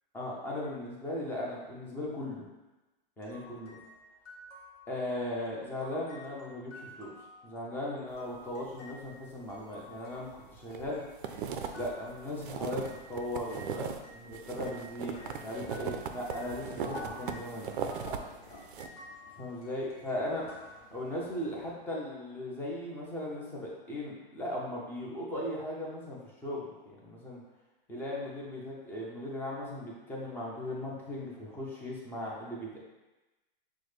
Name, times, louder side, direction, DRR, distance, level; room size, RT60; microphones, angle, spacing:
voice 1, 0.1-2.4 3.2-3.7 4.9-7.1 7.4-11.0 11.8-17.7 19.4-20.5 20.9-27.4 27.9-32.8, left 1 dB, 5° left, -4 dB, 0.5 m, -38 dB
sound 1, 3.2-13.7 14.0-21.4, left 1 dB, 40° left, 1.1 m, -53 dB
sound 2, 10.2-10.9 11.1-14.0 14.3-18.2 18.5-18.9, right 7 dB, 60° right, 0.5 m, -38 dB
sound 3, 14.6-21.7, left 1 dB, 25° left, 1.2 m, -50 dB
6.1 x 2.2 x 3.3 m, 1.1 s
hypercardioid pair, 150°, 29 cm